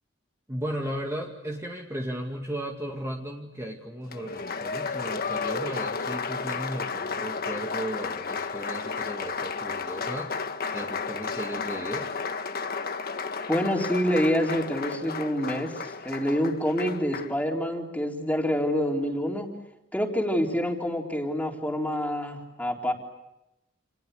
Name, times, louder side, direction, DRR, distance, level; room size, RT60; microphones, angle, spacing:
voice 1, 0.5-12.1, right 1 dB, 15° right, 0 dB, 2.2 m, -35 dB
Applause, 4.1-17.4, left 5 dB, 50° left, 1.5 m, -33 dB
voice 2, 13.5-19.5 19.9-22.9, equal, 10° left, 1 dB, 3.9 m, -27 dB
29.5 x 29.0 x 6.8 m, 0.91 s
head